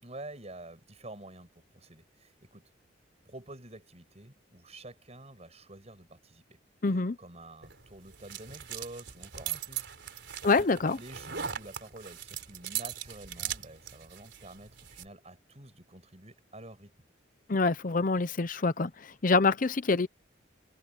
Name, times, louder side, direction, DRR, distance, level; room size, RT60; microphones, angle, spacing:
voice 1, 0.0-2.7 3.3-6.6 6.9-9.9 10.2-16.9, right 2 dB, 35° right, 7.6 m, -49 dB
voice 2, 6.8-7.2 10.4-11.0 17.5-20.1, left 3 dB, 45° left, 0.7 m, -26 dB
sound 1, 7.6-15.1, right 9 dB, 65° right, 4.4 m, -40 dB
head